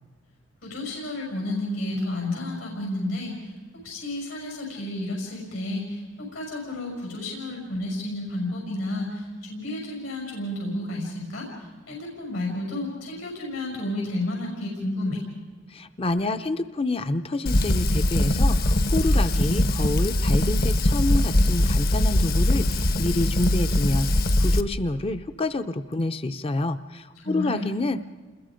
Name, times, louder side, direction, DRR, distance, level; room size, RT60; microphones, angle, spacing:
voice 1, 0.6-3.5 3.8-11.5 11.9-15.2 27.2-27.7, left 1 dB, 90° left, -1 dB, 6.3 m, -31 dB
voice 2, 15.7-28.1, left 2 dB, 30° left, 11 dB, 0.6 m, -28 dB
Fire, 17.5-24.6, left 1 dB, 50° left, 0.9 m, -21 dB
28.5 x 21.5 x 5.1 m, 1.5 s
head